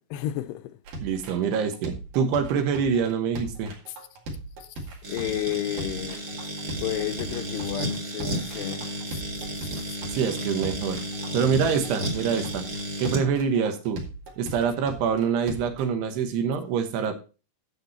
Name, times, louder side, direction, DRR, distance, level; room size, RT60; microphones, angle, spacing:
voice 1, 0.1-0.8 4.6-4.7 5.1-6.3 6.8-9.2 11.6-11.8, left 14 dB, 80° left, 2.7 m, -32 dB
sound 1, 0.9-15.8, right 2 dB, 55° right, 3.4 m, -38 dB
voice 2, 1.0-3.7 10.1-11.0 11.3-12.6 13.0-14.0 14.4-17.1, right 6 dB, 75° right, 3.2 m, -25 dB
sound 2, 5.0-13.3, equal, 40° right, 1.4 m, -33 dB
10.5 x 6.8 x 4.2 m
omnidirectional pair, 5.0 m